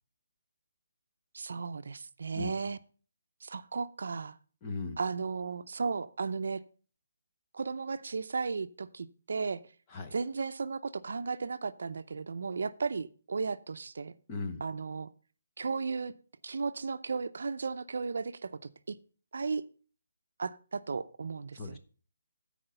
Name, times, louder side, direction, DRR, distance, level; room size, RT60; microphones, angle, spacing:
voice 1, 1.3-2.8 3.4-4.4 5.0-6.6 7.5-9.6 10.1-14.1 14.6-15.1 15.6-16.1 16.4-18.6 18.9-19.0 19.3-19.6 20.4-21.8, right 4 dB, 60° right, 12 dB, 0.6 m, -35 dB
voice 2, 4.6-5.0 9.9-10.1 14.3-14.6 21.5-21.8, left 3 dB, 15° left, 4 dB, 0.8 m, -37 dB
13.0 x 4.9 x 5.5 m, 0.40 s
hypercardioid pair, 175°, 0 cm